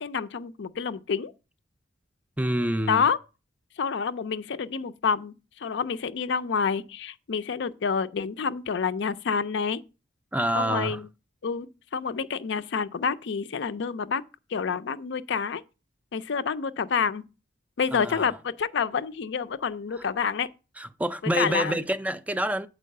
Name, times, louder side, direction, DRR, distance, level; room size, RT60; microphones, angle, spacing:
voice 1, 0.0-1.3 2.9-3.2 3.8-5.3 5.6-9.8 10.5-11.0 11.4-14.2 14.5-15.6 16.1-17.2 17.8-20.5 21.3-21.8, left 6 dB, 65° left, 0.5 m, -28 dB
voice 2, 2.4-3.0 10.3-11.0 17.9-18.3 20.8-22.7, right 1 dB, 10° right, 0.3 m, -27 dB
7.4 x 4.6 x 6.4 m
head